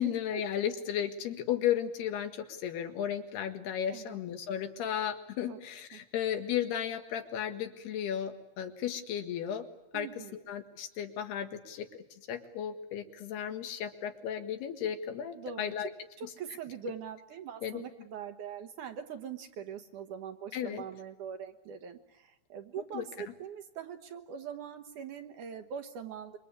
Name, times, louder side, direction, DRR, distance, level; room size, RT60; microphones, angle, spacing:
voice 1, 0.0-9.7 9.9-15.9 16.2-16.3 17.6-17.8 20.5-20.8 22.9-23.1, left 9 dB, 85° left, 6 dB, 3.8 m, -34 dB
voice 2, 9.9-10.4 15.4-15.7 16.2-26.4, right 7 dB, 65° right, 7 dB, 2.4 m, -42 dB
26.5 x 23.5 x 8.4 m, 0.94 s
omnidirectional pair, 4.5 m